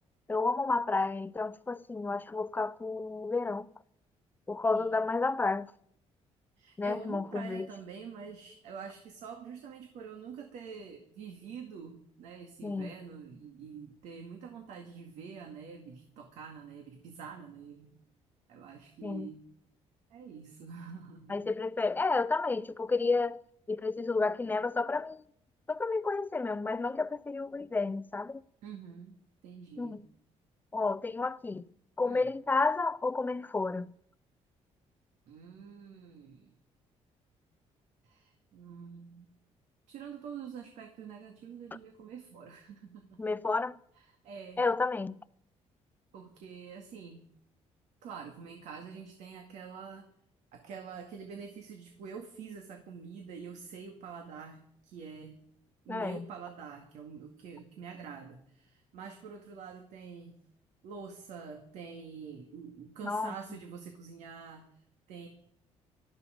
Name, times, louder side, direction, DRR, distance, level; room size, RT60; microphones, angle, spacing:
voice 1, 0.3-3.7 4.5-5.7 6.8-7.7 12.6-12.9 19.0-19.3 21.3-23.4 23.7-25.2 25.7-28.4 29.8-30.0 30.7-31.7 32.0-33.9 43.2-43.8 44.6-45.2 55.9-56.2 63.0-63.3, left 3 dB, 15° left, 0.5 m, -31 dB
voice 2, 6.6-17.9 18.5-19.4 20.1-21.4 28.6-30.0 32.0-32.3 35.3-36.5 38.0-39.3 39.9-43.2 44.0-44.6 46.1-47.2 48.0-50.1 50.5-55.4 55.9-60.4 60.8-65.3, right 6 dB, 85° right, 2.1 m, -46 dB
18.5 x 13.0 x 5.1 m
cardioid pair, 115°, 12 cm